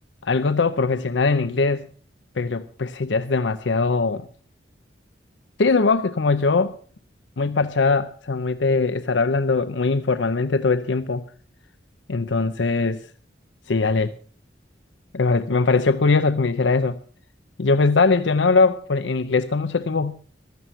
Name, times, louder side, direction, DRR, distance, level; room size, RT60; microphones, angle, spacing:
voice 1, 0.2-1.9 2.4-4.2 5.6-6.7 7.4-11.2 12.1-13.0 13.7-14.1 15.1-17.0 17.6-20.1, left 4 dB, 80° left, 0.7 m, -21 dB
15.0 x 13.0 x 5.6 m
head